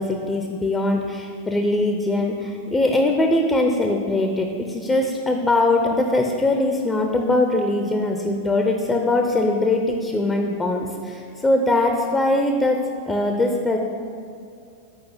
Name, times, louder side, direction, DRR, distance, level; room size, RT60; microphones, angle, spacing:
voice 1, 0.0-12.8 13.1-13.8, left 2 dB, 10° left, 3 dB, 0.6 m, -21 dB
8.1 x 4.8 x 4.2 m, 2.4 s
figure-of-eight pair, 90°, 0 cm